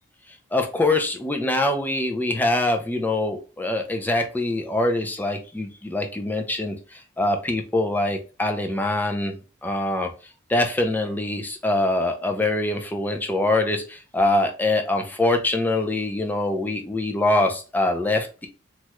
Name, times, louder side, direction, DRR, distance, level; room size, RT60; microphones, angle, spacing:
voice 1, 0.5-10.1 10.5-18.5, left 2 dB, 10° left, 3 dB, 0.4 m, -24 dB
3.1 x 2.3 x 2.9 m, 0.35 s
head